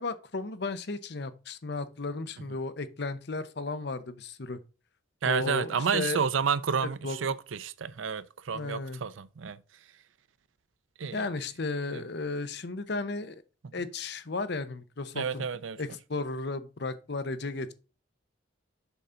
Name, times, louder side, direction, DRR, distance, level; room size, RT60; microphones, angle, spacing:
voice 1, 0.0-4.6 5.2-6.2 6.8-7.2 8.5-9.0 11.1-13.3 13.7-15.4 15.8-17.7, left 3 dB, 60° left, 0.8 m, -34 dB
voice 2, 5.2-9.6 11.0-11.3 11.9-12.0 13.6-13.7 15.1-15.8, right 6 dB, 85° right, 0.6 m, -30 dB
7.1 x 5.8 x 3.8 m
head